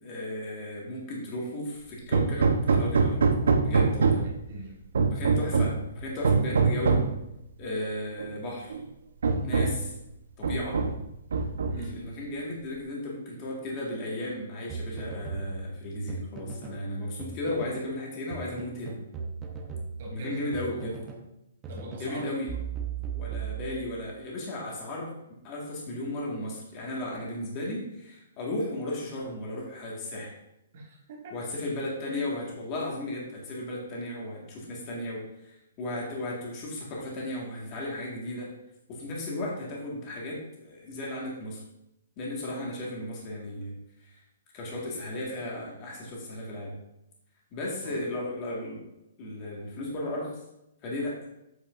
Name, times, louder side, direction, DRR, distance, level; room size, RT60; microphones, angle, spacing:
voice 1, 0.0-3.2 3.6-4.2 5.1-7.0 7.6-8.8 9.4-9.9 10.4-10.8 11.8-19.0 20.1-20.9 21.9-22.5 23.1-25.1 25.4-30.3 31.3-38.5 38.9-41.6 42.2-43.7 44.0-44.1 44.5-46.7 47.5-48.8 49.2-50.4 50.8-51.2, left 1 dB, 20° left, -3 dB, 1.8 m, -35 dB
Hammer, 2.1-4.4 5.0-5.8 6.2-7.2 8.2-8.3 8.7-8.8 9.2-9.9 10.4-11.0 11.3-12.0, right 4 dB, 80° right, 1.0 m, -24 dB
voice 2, 3.9-4.8 11.7-12.0 20.0-21.0 21.7-22.6 30.7-31.5 47.8-48.0, right 1 dB, 40° right, -1 dB, 1.6 m, -42 dB
sound 1, 14.7-16.8 17.2-18.0 18.3-21.3 21.6-24.1, right 6 dB, 10° right, 0.7 m, -38 dB
8.4 x 8.1 x 2.6 m, 0.86 s
hypercardioid pair, 175°, 0 cm